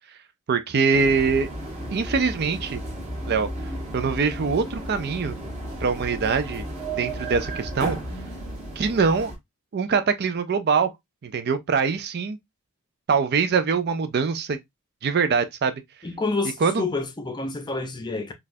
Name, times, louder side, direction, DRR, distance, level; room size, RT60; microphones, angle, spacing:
voice 1, 0.5-1.5 1.9-2.8 3.3-3.5 3.9-5.4 5.8-6.7 7.0-8.0 8.8-9.3 9.7-10.9 11.2-12.4 13.1-14.6 15.0-15.7 16.6-16.8, right 5 dB, 50° right, 0.4 m, -23 dB
sound 1, 0.9-9.3, right 1 dB, 30° right, 1.3 m, -34 dB
voice 2, 16.0-18.3, left 3 dB, 20° left, 0.5 m, -28 dB
3.9 x 2.4 x 2.6 m
head